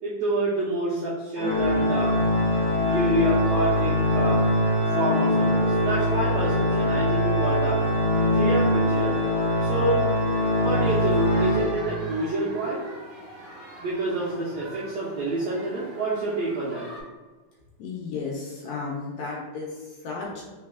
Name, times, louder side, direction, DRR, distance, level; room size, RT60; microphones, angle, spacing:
voice 1, 0.0-2.1 2.7-4.4 4.9-7.8 8.3-9.2 9.6-10.1 10.6-12.8 13.8-16.8, right 2 dB, 80° right, -7 dB, 1.5 m, -28 dB
Organ, 1.3-12.2, left 1 dB, 55° left, 1.6 m, -23 dB
sound 1, 10.8-17.0, right 1 dB, 60° right, 1.3 m, -43 dB
voice 2, 17.8-20.5, left 4 dB, 75° left, -3 dB, 1.9 m, -34 dB
4.2 x 4.1 x 2.3 m, 1.3 s
omnidirectional pair, 3.8 m